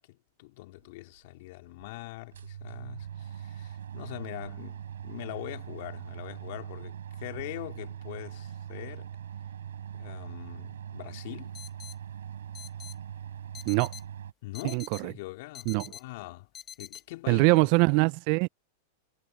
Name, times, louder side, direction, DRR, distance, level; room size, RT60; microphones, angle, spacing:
voice 1, 0.0-9.1 9.9-11.6 14.4-16.5 16.8-17.7, left 20 dB, 60° left, 3.6 m, -43 dB
sound 1, 1.1-1.2 1.8-1.9 2.2-14.3, right 9 dB, 90° right, 3.6 m, -41 dB
sound 2, 11.5-11.9 12.5-12.9 13.5-14.0 14.5-15.0 15.5-16.0 16.5-17.0, left 9 dB, 25° left, 0.6 m, -44 dB
voice 2, 14.7-15.1 15.7-15.8 17.3-18.5, right 29 dB, 55° right, 0.4 m, -23 dB
hypercardioid pair, 120°, 0 cm